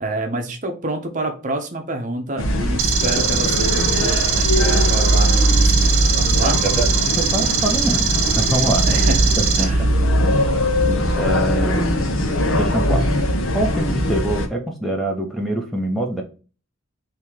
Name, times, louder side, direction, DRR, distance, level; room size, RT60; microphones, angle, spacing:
voice 1, 0.0-6.6 8.9-9.9, right 2 dB, 40° right, 4 dB, 0.7 m, -28 dB
sound 1, 2.4-14.5, equal, 75° left, 0.8 m, -20 dB
sound 2, 2.8-9.6, right 8 dB, 85° right, 0.8 m, -22 dB
voice 2, 6.4-9.0 9.6-9.7 10.2-10.3 11.1-11.8 12.6-13.0 13.5-16.2, right 1 dB, ahead, 1 dB, 0.6 m, -24 dB
3.6 x 2.8 x 4.5 m, 0.35 s
head